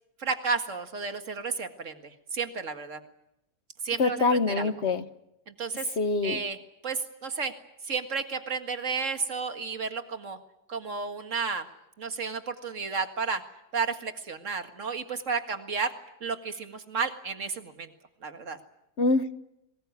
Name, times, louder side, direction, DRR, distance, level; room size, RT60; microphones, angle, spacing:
voice 1, 0.2-3.0 3.8-4.7 5.5-5.9 6.2-6.6 6.8-7.5 7.8-10.4 10.7-11.7 12.0-13.5 13.7-17.9 18.2-18.6, right 5 dB, 55° right, 7 dB, 2.1 m, -32 dB
voice 2, 4.0-5.0 6.0-6.4 19.0-19.3, left 3 dB, 50° left, 12 dB, 1.4 m, -24 dB
23.5 x 20.5 x 9.6 m, 0.85 s
omnidirectional pair, 1.6 m